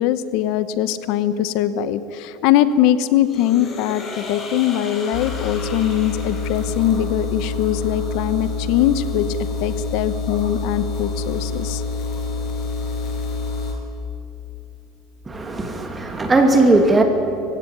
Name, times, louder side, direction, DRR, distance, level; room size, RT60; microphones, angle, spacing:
voice 1, 0.0-11.8, left 11 dB, 65° left, 13 dB, 0.9 m, -21 dB
sound 1, 3.2-7.3, left 3 dB, 25° left, 4.1 m, -35 dB
sound 2, 5.1-13.7, left 3 dB, 50° left, 6.1 m, -27 dB
voice 2, 15.3-17.0, right 2 dB, 15° right, 4 dB, 2.5 m, -17 dB
23.0 x 16.0 x 9.3 m, 2.7 s
cardioid pair, 145°, 0 cm